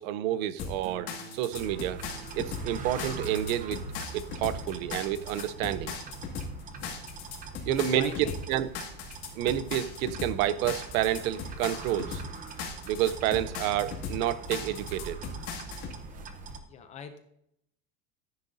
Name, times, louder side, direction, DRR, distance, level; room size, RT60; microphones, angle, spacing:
voice 1, 0.0-2.0 2.3-3.8 4.1-5.9 7.7-8.7 9.4-12.2 12.9-15.2, right 12 dB, 85° right, 0.8 m, -29 dB
sound 1, 0.6-16.0, left 5 dB, 40° left, 2.2 m, -38 dB
sound 2, 0.8-7.4 7.8-8.3, right 4 dB, 50° right, 1.2 m, -53 dB
sound 3, 1.5-16.6, right 4 dB, 20° right, 0.7 m, -42 dB
voice 2, 7.7-8.4 16.6-17.2, left 7 dB, 20° left, 0.4 m, -42 dB
14.5 x 9.7 x 2.7 m
cardioid pair, 180°, 40 cm